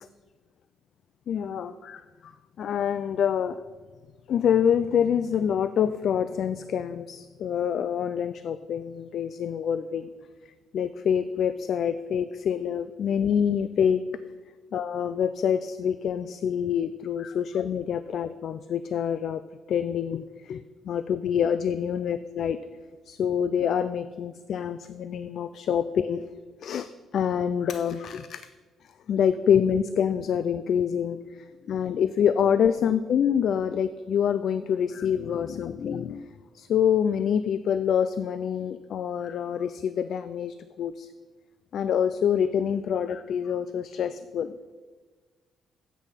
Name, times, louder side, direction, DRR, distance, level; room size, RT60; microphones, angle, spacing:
voice 1, 1.3-2.3 2.6-3.6 4.3-10.1 10.7-14.0 14.7-19.4 19.7-22.6 23.1-26.2 26.6-26.9 27.1-28.4 29.1-36.3 36.5-41.1 41.7-44.5, left 8 dB, 50° left, 13 dB, 0.3 m, -26 dB
9.7 x 8.3 x 5.7 m, 1.4 s
cardioid pair, 180°, 0 cm